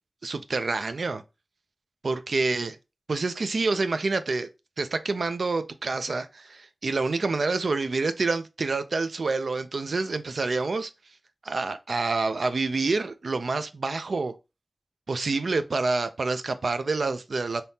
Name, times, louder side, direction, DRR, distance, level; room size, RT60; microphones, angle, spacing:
voice 1, 0.2-1.2 2.0-2.7 3.1-4.5 4.8-10.9 11.4-14.3 15.1-17.6, right 3 dB, 85° right, 0.3 m, -27 dB
3.4 x 2.7 x 2.7 m
wide cardioid pair, 65°, 0 cm